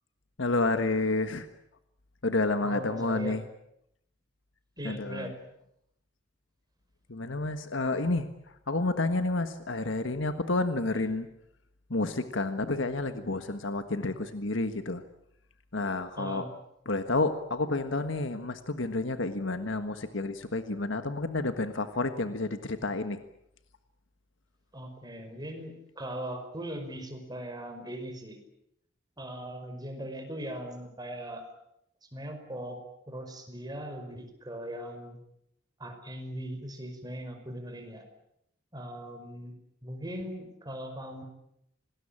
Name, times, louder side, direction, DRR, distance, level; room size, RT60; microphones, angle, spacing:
voice 1, 0.4-1.5 2.2-3.4 4.8-5.3 7.1-8.3 8.7-11.3 11.9-15.0 15.7-16.5 16.9-23.2, left 2 dB, 75° left, 9 dB, 1.5 m, -30 dB
voice 2, 2.6-3.3 4.8-5.3 10.9-11.0 16.2-16.5 24.7-28.4 29.2-31.4 32.1-32.8 33.1-35.2 35.8-38.0 38.7-39.5 39.8-41.2, right 1 dB, 20° right, 6 dB, 5.3 m, -39 dB
26.5 x 20.0 x 8.9 m, 0.78 s
head